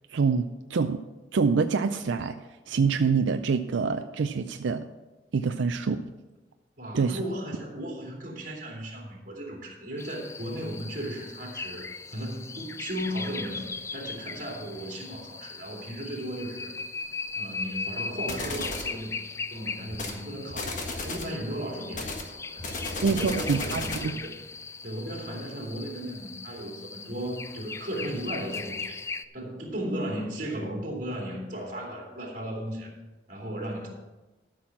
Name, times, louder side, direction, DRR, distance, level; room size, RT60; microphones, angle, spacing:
voice 1, 0.1-1.0 1.3-4.9 5.3-6.0 6.9-7.2 23.0-24.2, right 5 dB, 90° right, 8 dB, 0.4 m, -26 dB
voice 2, 6.8-11.9 12.1-16.7 17.3-19.1 19.5-22.1 22.4-22.7 22.9-24.4 24.8-29.0 29.3-32.9 33.3-33.9, equal, 45° right, -1 dB, 2.9 m, -36 dB
sound 1, 10.0-29.2, left 4 dB, 15° left, 0.3 m, -39 dB
sound 2, 18.3-18.9 19.9-20.2 20.5-21.3 21.9-24.1, left 2 dB, 45° left, 1.6 m, -34 dB
12.5 x 6.1 x 5.9 m, 1.1 s
head